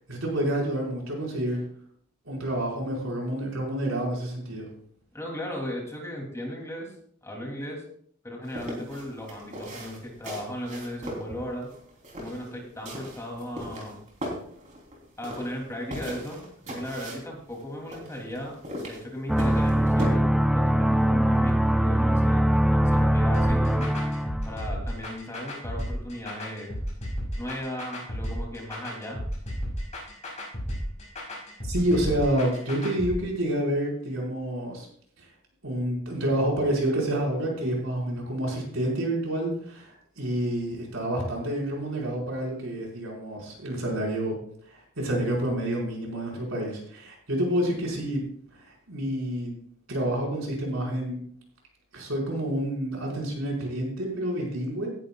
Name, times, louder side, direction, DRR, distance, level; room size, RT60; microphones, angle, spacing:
voice 1, 0.1-1.6 2.2-4.7 31.6-34.9 35.2-35.3 35.6-44.3 44.6-48.2 48.6-49.5 49.9-51.2 51.9-54.9, right 1 dB, 80° right, -2 dB, 4.9 m, -28 dB
voice 2, 5.1-6.9 7.2-7.8 8.2-11.7 12.2-14.0 15.2-16.4 16.7-23.9 24.5-26.7 27.3-29.2, equal, 15° left, -1 dB, 2.8 m, -36 dB
sound 1, 8.4-20.1, equal, 35° right, 3.4 m, -39 dB
sound 2, 19.3-24.6, equal, ahead, 0.4 m, -22 dB
sound 3, 23.3-33.1, equal, 35° left, 5.7 m, -33 dB
18.0 x 11.0 x 2.3 m, 0.62 s
head